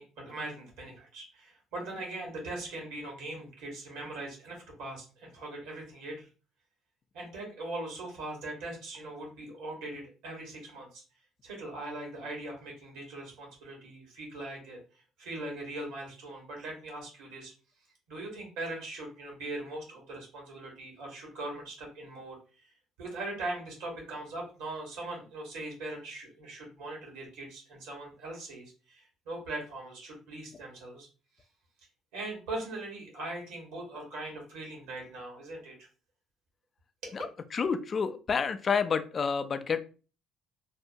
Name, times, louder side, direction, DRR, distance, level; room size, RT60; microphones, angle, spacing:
voice 1, 0.0-6.3 7.1-11.0 11.4-17.5 18.1-22.7 23.0-31.1 32.1-35.7 37.0-37.1, right 2 dB, 80° right, -1 dB, 1.3 m, -40 dB
voice 2, 37.5-39.8, left 6 dB, 45° left, 10 dB, 0.4 m, -29 dB
2.7 x 2.1 x 2.7 m, 0.35 s
supercardioid pair, 65°, 0 cm